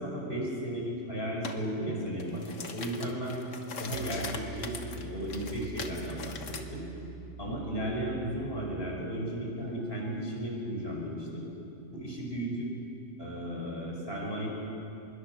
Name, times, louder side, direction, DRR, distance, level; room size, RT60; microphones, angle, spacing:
voice 1, 0.0-3.4 3.8-6.9 7.4-11.5 11.9-12.7 13.2-14.5, right 1 dB, 45° left, -2 dB, 5.6 m, -35 dB
sound 1, 1.4-1.6 2.1-6.6, left 5 dB, 70° left, 1.6 m, -41 dB
Piano, 3.9-9.0, right 5 dB, 65° right, 1.1 m, -45 dB
25.0 x 22.0 x 6.0 m, 2.8 s
omnidirectional pair, 1.4 m